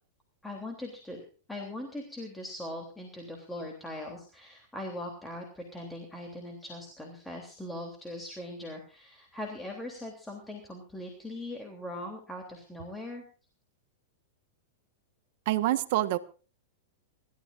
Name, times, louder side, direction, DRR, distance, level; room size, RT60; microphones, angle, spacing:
voice 1, 0.4-13.2, left 1 dB, 5° left, 1 dB, 3.3 m, -40 dB
voice 2, 15.4-16.2, right 15 dB, 60° right, 10 dB, 1.4 m, -26 dB
29.0 x 13.5 x 2.6 m, 0.36 s
hypercardioid pair, 125°, 0 cm